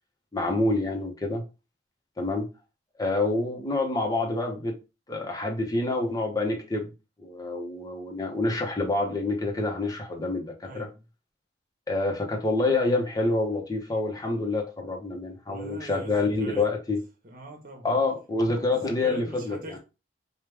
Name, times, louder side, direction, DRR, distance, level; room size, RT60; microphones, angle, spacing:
voice 1, 0.3-1.4 2.2-2.5 3.0-4.8 5.1-6.9 7.2-10.9 11.9-17.0 17.8-19.8, left 2 dB, 20° left, 0.9 m, -27 dB
voice 2, 10.6-11.0 15.4-16.7 17.2-17.9 18.7-19.8, right 1 dB, 50° right, 1.3 m, -42 dB
5.0 x 2.4 x 3.4 m
head